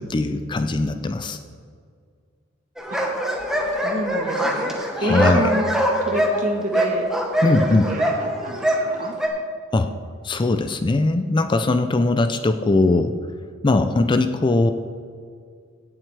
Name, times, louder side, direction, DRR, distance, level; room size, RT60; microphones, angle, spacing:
voice 1, 0.0-1.4 5.0-5.4 7.4-7.9 9.7-9.9 10.2-13.1 13.6-14.7, left 2 dB, 25° left, 9 dB, 0.4 m, -20 dB
sound 1, 2.8-9.3, equal, 5° right, 1.2 m, -23 dB
voice 2, 3.8-5.7 6.0-7.1 7.4-9.2, right 1 dB, 40° right, 2 dB, 1.4 m, -29 dB
17.0 x 7.4 x 3.4 m, 2.1 s
head